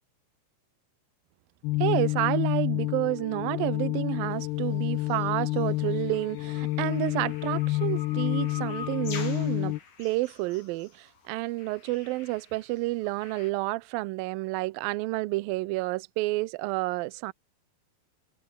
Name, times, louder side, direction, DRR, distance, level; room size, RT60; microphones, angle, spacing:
sound 1, 1.6-9.8, left 19 dB, 80° left, 2.5 m, -29 dB
voice 1, 1.8-17.3, right 21 dB, 85° right, 2.1 m, -30 dB
sound 2, 5.1-13.5, left 6 dB, 50° left, 5.2 m, -46 dB
omnidirectional pair, 5.0 m